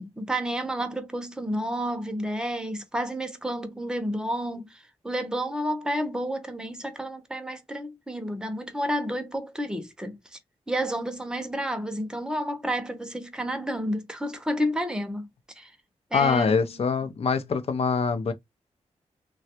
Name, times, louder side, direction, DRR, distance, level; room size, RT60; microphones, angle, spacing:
voice 1, 0.0-10.4 10.7-15.3 15.6-15.7 16.1-16.8, equal, 5° right, 0.7 m, -30 dB
voice 2, 16.1-18.3, left 5 dB, 55° left, 0.6 m, -24 dB
3.2 x 2.3 x 2.7 m
cardioid pair, 90°, 12 cm